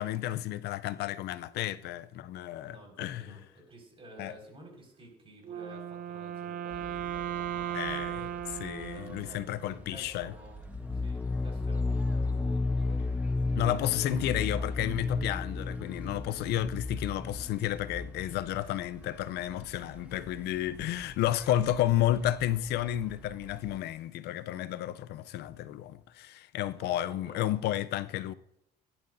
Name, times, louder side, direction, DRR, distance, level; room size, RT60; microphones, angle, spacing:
voice 1, 0.0-3.4 4.2-4.3 7.7-8.2 8.6-10.3 13.6-28.3, left 13 dB, 75° left, 0.6 m, -32 dB
voice 2, 2.6-8.3 8.9-10.6 10.9-13.0 13.5-13.8 14.1-14.7 16.9-17.0 18.5-18.7 21.9-22.1 26.7-27.6, right 1 dB, 35° right, 5.1 m, -51 dB
Wind instrument woodwind instrument, 5.4-9.7, right 10 dB, 55° right, 0.8 m, -37 dB
sound 1, 6.7-23.8, right 1 dB, 10° right, 1.5 m, -51 dB
sound 2, 10.7-18.3, left 3 dB, 10° left, 0.4 m, -32 dB
16.5 x 11.0 x 2.7 m
cardioid pair, 110°, 17 cm